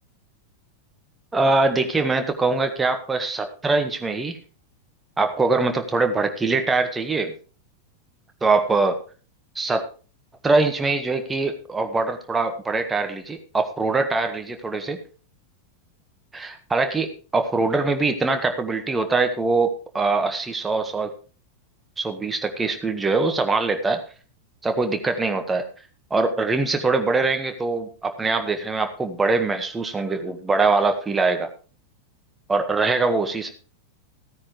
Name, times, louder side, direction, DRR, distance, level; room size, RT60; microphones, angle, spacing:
voice 1, 1.3-4.4 5.2-7.3 8.4-9.0 9.5-9.8 10.4-15.0 16.3-21.1 22.0-24.0 24.6-25.6 26.1-31.5 32.5-33.5, right 3 dB, 15° right, 6 dB, 1.6 m, -23 dB
15.5 x 9.7 x 3.3 m, 0.37 s
figure-of-eight pair, 90°, 0 cm